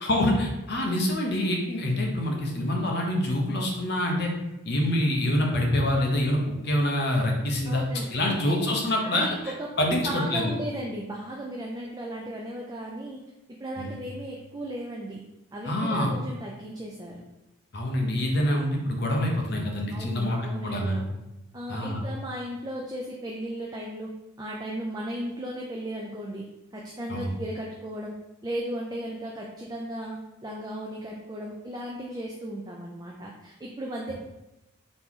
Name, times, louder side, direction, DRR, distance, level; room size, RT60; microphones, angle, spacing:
voice 1, 0.0-4.3 4.6-6.4 6.6-7.8 8.1-9.3 9.8-10.5 13.8-13.9 15.6-16.1 17.7-21.0 21.7-22.0 27.1-27.3, left 1 dB, 50° left, 0 dB, 0.8 m, -26 dB
voice 2, 7.7-8.8 9.0-13.2 13.6-15.2 15.5-17.2 19.9-21.2 21.5-34.1, right 1 dB, 20° right, -2 dB, 0.3 m, -36 dB
4.0 x 2.9 x 3.6 m, 0.96 s
head